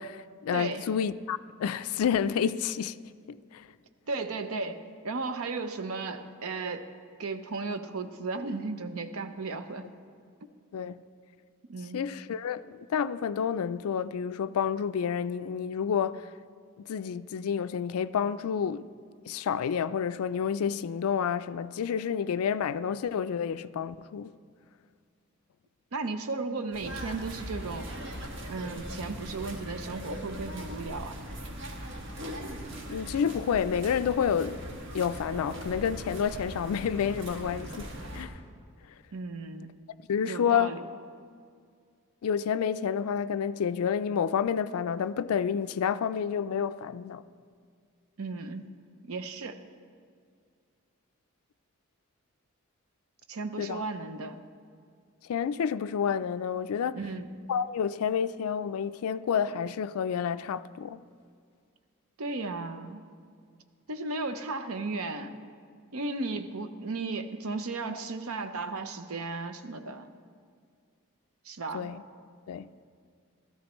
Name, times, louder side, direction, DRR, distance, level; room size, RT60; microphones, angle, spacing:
voice 1, 0.0-3.0 3.3-3.7 10.7-11.0 11.9-16.3 16.8-18.9 19.3-24.3 32.9-34.6 34.9-38.4 40.1-40.7 42.2-47.2 53.6-53.8 55.3-57.0 57.5-61.0 71.7-72.0 72.5-72.7, left 7 dB, 80° left, 0.3 m, -29 dB
voice 2, 0.5-0.9 4.1-6.9 7.2-9.8 10.4-10.5 11.7-12.0 25.9-27.9 28.5-31.2 39.1-39.7 40.2-40.8 48.2-48.7 49.0-49.6 53.3-54.4 56.9-57.3 62.2-63.1 63.9-65.4 65.9-70.1 71.4-71.9, right 3 dB, 75° right, 0.7 m, -35 dB
sound 1, 26.7-38.2, equal, 55° right, 1.5 m, -40 dB
16.5 x 13.5 x 3.1 m
head